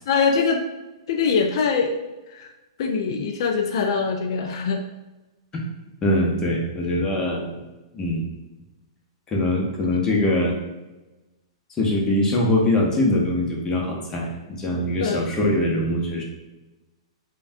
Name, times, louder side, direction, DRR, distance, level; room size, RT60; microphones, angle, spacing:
voice 1, 0.1-0.7 1.1-1.9 2.3-2.5 2.8-4.8 9.9-10.3 15.0-15.2, left 5 dB, 60° left, 3 dB, 0.3 m, -23 dB
voice 2, 6.0-7.6 7.9-8.2 9.3-10.5 11.8-16.2, left 1 dB, 20° left, -2 dB, 0.8 m, -22 dB
3.3 x 2.2 x 2.6 m, 1.1 s
hypercardioid pair, 120°, 3 cm